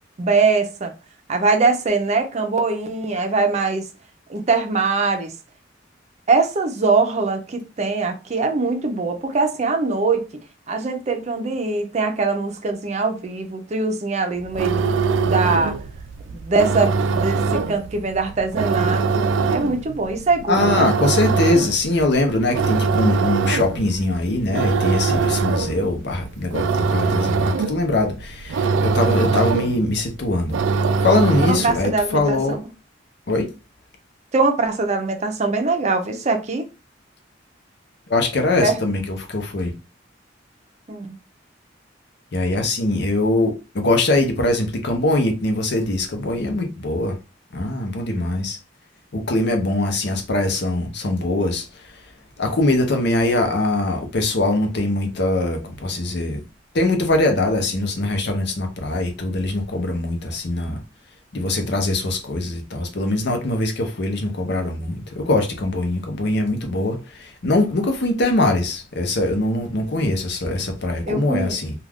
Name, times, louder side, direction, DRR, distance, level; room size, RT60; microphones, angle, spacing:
voice 1, 0.2-0.9 1.3-3.9 4.3-5.3 6.3-10.3 10.7-14.9 15.2-15.8 16.3-20.9 31.6-32.6 34.3-36.7 38.6-38.8 40.9-41.2 70.5-70.6 71.1-71.6, right 3 dB, 40° right, 0.5 m, -22 dB
sound 1, 14.4-31.9, right 4 dB, 90° right, 0.3 m, -22 dB
voice 2, 20.5-30.6 31.0-32.6 33.3-33.5 38.1-39.7 42.3-47.2 47.5-48.6 49.1-52.0 52.4-56.4 56.7-60.8 61.3-71.7, left 2 dB, 65° left, 0.7 m, -22 dB
2.4 x 2.3 x 3.4 m
head